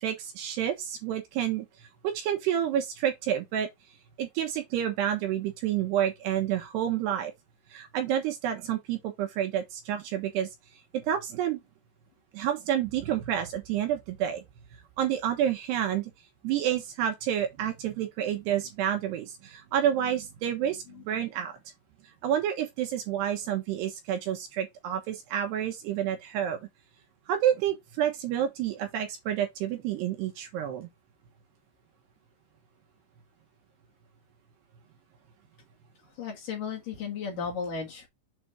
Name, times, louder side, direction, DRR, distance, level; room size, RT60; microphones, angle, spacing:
voice 1, 0.0-3.7 4.2-7.3 7.7-10.5 10.9-11.6 12.3-14.4 15.0-16.1 16.4-21.5 22.2-26.6 27.3-30.9, right 10 dB, 70° right, 2.9 m, -29 dB
voice 2, 36.2-38.1, left 6 dB, 55° left, 2.9 m, -35 dB
7.8 x 3.9 x 3.5 m
omnidirectional pair, 5.5 m